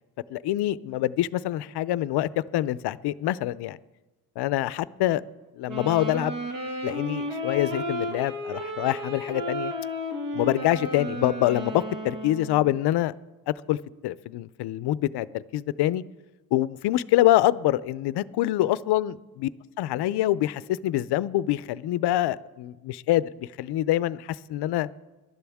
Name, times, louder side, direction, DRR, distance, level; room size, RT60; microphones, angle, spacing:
voice 1, 0.3-3.8 4.4-5.2 5.6-6.4 6.8-9.7 10.3-13.1 13.5-13.8 14.0-16.0 16.5-19.5 19.8-24.9, left 14 dB, 90° left, 0.5 m, -25 dB
sound 1, 5.7-12.7, equal, 55° right, 1.9 m, -33 dB
22.5 x 12.0 x 3.5 m
cardioid pair, 170°, 39 cm